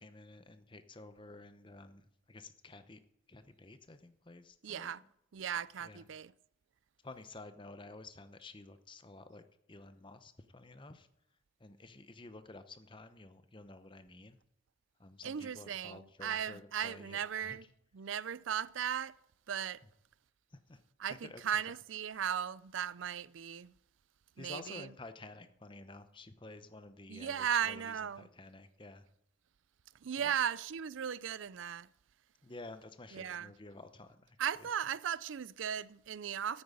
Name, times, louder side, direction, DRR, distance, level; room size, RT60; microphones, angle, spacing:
voice 1, 0.0-3.0 3.3-5.0 5.8-6.1 7.0-11.1 11.6-14.4 15.0-17.7 19.8-19.9 20.5-20.8 21.1-21.8 24.4-29.0 30.2-30.4 32.4-34.7, left 2 dB, 25° left, 0.8 m, -52 dB
voice 2, 4.6-5.0 5.3-6.3 15.2-17.6 17.9-19.2 19.5-19.8 21.0-23.7 24.4-24.9 27.1-28.3 30.0-31.9 33.1-33.5 34.4-36.6, right 8 dB, 75° right, 0.5 m, -37 dB
9.7 x 8.7 x 8.4 m
head